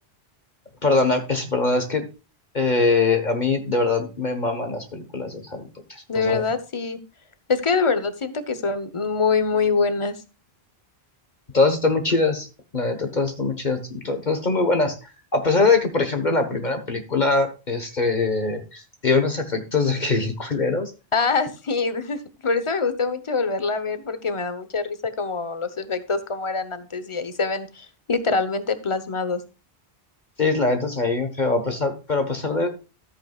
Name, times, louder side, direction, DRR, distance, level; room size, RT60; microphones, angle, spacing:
voice 1, 0.8-2.0 2.5-6.4 11.5-12.5 12.7-14.9 15.3-20.9 30.4-32.7, left 3 dB, 45° left, 6 dB, 1.5 m, -22 dB
voice 2, 6.1-7.0 7.5-10.2 21.1-29.4, left 4 dB, 30° left, 12 dB, 1.1 m, -24 dB
14.0 x 8.7 x 2.4 m, 0.31 s
omnidirectional pair, 1.1 m